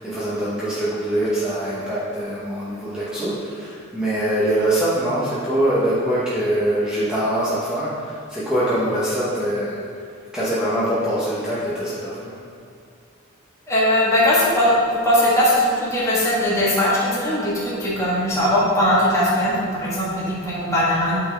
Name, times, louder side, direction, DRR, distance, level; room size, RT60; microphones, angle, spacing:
voice 1, 0.0-9.8 10.3-12.4, right 1 dB, 5° right, -11 dB, 1.0 m, -23 dB
voice 2, 13.7-21.2, left 1 dB, 15° left, -8 dB, 1.4 m, -19 dB
8.6 x 4.1 x 3.4 m, 2.5 s
head